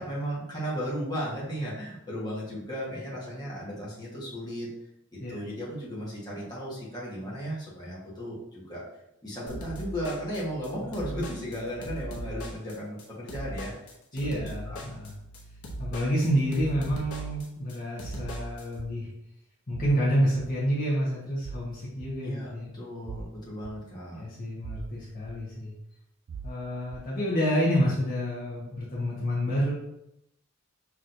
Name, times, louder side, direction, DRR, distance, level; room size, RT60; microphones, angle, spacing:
voice 1, 0.0-4.7 5.1-8.9 9.2-13.7 14.3-14.8 22.2-24.2, equal, 20° left, -7 dB, 1.3 m, -35 dB
sound 1, 9.5-18.6, right 1 dB, 80° left, 0.9 m, -39 dB
voice 2, 14.1-15.2 15.8-19.1 19.7-22.7 24.1-25.7 26.4-29.7, equal, 40° left, -7 dB, 1.1 m, -28 dB
sound 2, 18.1-18.4 18.8-18.9 19.7-20.0 20.4-20.5 21.4-21.6 22.0-22.1 23.0-23.3 23.6-23.7 24.6-24.9 25.3-25.4 26.3-26.5 26.9-27.0, right 5 dB, 50° right, 0.3 m, -39 dB
5.9 x 3.1 x 2.6 m, 0.81 s
head